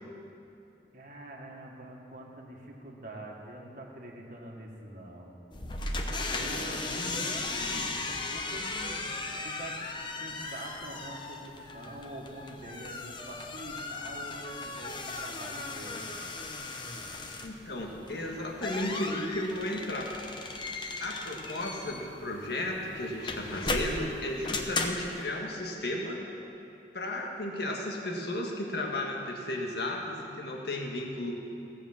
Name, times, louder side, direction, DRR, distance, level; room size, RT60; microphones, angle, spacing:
voice 1, 0.9-5.3 6.3-8.0 8.3-9.1 9.4-9.8 10.2-16.1, right 1 dB, 45° right, -1 dB, 1.7 m, -44 dB
sound 1, 5.5-25.2, left 3 dB, 25° left, 0.8 m, -37 dB
voice 2, 6.8-7.2 17.4-20.1 21.0-26.2 26.9-31.4, left 1 dB, 65° left, 0 dB, 1.7 m, -34 dB
16.5 x 7.1 x 7.3 m, 2.9 s
head